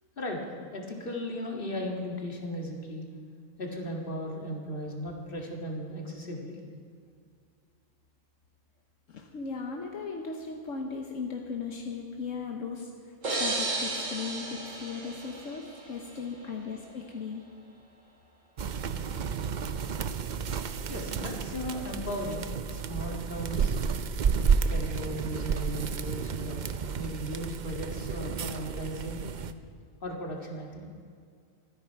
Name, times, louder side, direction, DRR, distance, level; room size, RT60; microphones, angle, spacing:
voice 1, 0.2-3.0 3.6-6.6 20.9-23.7 24.7-26.7 27.0-29.2 30.0-30.9, equal, 45° left, 0 dB, 2.2 m, -36 dB
voice 2, 9.1-17.4, left 5 dB, 75° left, 2 dB, 1.4 m, -37 dB
sound 1, 13.2-16.0, right 2 dB, 75° right, 2.7 m, -33 dB
sound 2, 18.6-29.5, right 6 dB, 50° right, 0.6 m, -31 dB
24.0 x 9.8 x 4.6 m, 2.2 s
omnidirectional pair, 1.3 m